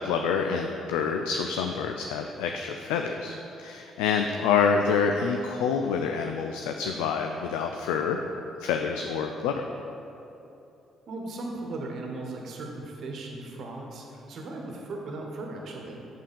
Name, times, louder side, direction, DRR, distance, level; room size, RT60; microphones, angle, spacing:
voice 1, 0.0-8.2 8.6-9.7, left 6 dB, 75° left, 4 dB, 0.3 m, -27 dB
voice 2, 11.1-16.0, right 2 dB, 60° right, 1 dB, 1.1 m, -37 dB
7.3 x 5.7 x 5.2 m, 2.8 s
hypercardioid pair, 45°, 0 cm